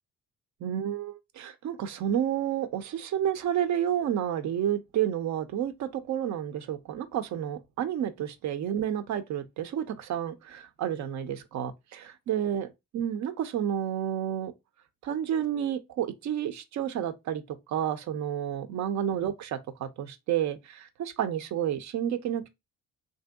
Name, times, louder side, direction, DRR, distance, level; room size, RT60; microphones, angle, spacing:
voice 1, 0.6-14.5 15.0-22.5, right 10 dB, 65° right, 0.6 m, -30 dB
3.4 x 2.7 x 2.2 m
cardioid pair, 90°, 30 cm